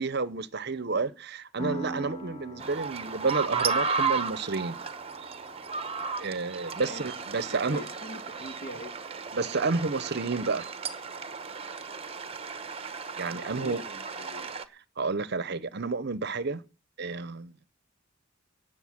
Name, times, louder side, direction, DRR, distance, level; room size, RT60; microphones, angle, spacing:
voice 1, 0.0-4.8 6.2-7.8 9.3-10.7 13.2-13.8 15.0-16.6 17.0-17.5, right 4 dB, 50° right, 0.8 m, -30 dB
Piano, 1.6-9.0, right 1 dB, 25° left, 1.1 m, -44 dB
sound 1, 2.6-14.6, right 5 dB, 30° right, 0.9 m, -34 dB
voice 2, 6.6-8.9 13.3-14.5, equal, 50° left, 1.5 m, -43 dB
17.0 x 6.7 x 7.2 m
head